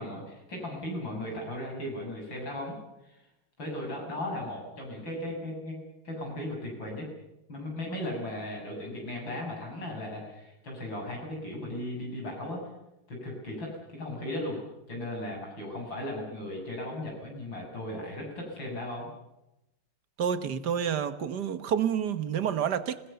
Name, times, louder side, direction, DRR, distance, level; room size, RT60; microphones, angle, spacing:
voice 1, 0.0-2.8 3.0-3.1 3.6-5.8 6.0-7.1 7.5-12.7 13.1-14.6 14.9-19.1, left 1 dB, 65° left, 8.0 m, -36 dB
voice 2, 20.2-23.0, right 8 dB, 55° right, 1.7 m, -29 dB
27.5 x 19.5 x 6.9 m
omnidirectional pair, 2.2 m